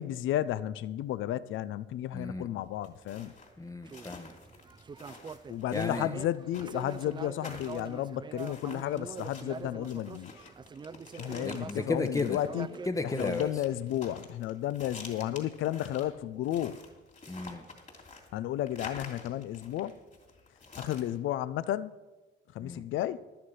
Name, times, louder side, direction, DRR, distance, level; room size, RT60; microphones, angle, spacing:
voice 1, 0.0-3.3 5.5-10.5 11.1-12.8 13.0-16.8 18.3-20.0 20.8-21.9 22.5-23.2, left 12 dB, 80° left, 0.5 m, -33 dB
voice 2, 2.1-2.5 3.6-4.3 5.7-6.1 11.4-12.4 12.9-13.5 17.3-17.6 22.6-22.9, left 2 dB, 15° left, 0.8 m, -34 dB
sound 1, 2.6-21.2, left 3 dB, 35° left, 2.9 m, -49 dB
sound 2, 3.9-12.9, right 5 dB, 25° right, 0.4 m, -44 dB
11.5 x 9.5 x 5.6 m
cardioid pair, 90°, 20 cm